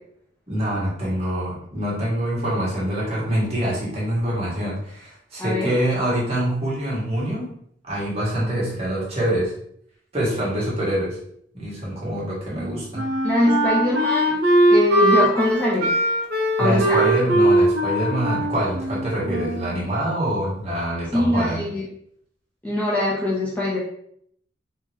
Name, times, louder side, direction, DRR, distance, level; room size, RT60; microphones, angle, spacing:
voice 1, 0.5-7.5 7.9-9.5 10.1-11.2 11.5-13.0 16.6-21.6, right 1 dB, 35° right, -6 dB, 1.5 m, -25 dB
voice 2, 5.4-5.7 13.2-14.3 14.7-15.9 16.6-17.0 21.1-21.8 22.6-23.8, left 1 dB, 10° left, -6 dB, 0.6 m, -22 dB
Wind instrument woodwind instrument, 12.5-19.8, right 1 dB, 55° right, 1.2 m, -20 dB
3.6 x 2.8 x 3.2 m, 0.67 s
head